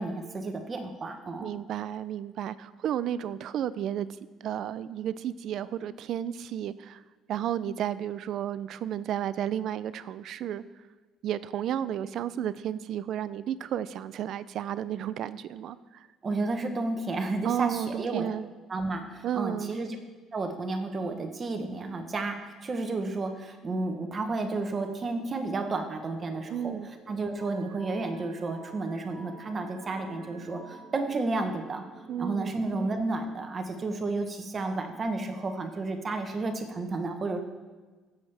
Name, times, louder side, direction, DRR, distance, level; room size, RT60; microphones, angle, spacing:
voice 1, 0.0-1.5 16.2-18.3 18.7-20.0 20.3-26.7 27.1-31.8 32.2-37.4, right 3 dB, 25° right, 5 dB, 0.9 m, -32 dB
voice 2, 1.4-4.1 4.4-7.0 7.3-10.6 11.2-16.1 17.4-18.5 19.2-19.7 26.5-26.9 32.1-32.5, right 10 dB, 55° right, 16 dB, 0.4 m, -32 dB
sound 1, 25.0-33.0, right 1 dB, 35° left, 1.9 m, -52 dB
Alarm, 27.4-30.9, right 1 dB, 55° left, 2.8 m, -51 dB
15.5 x 7.1 x 3.4 m, 1.3 s
cardioid pair, 150°, 0 cm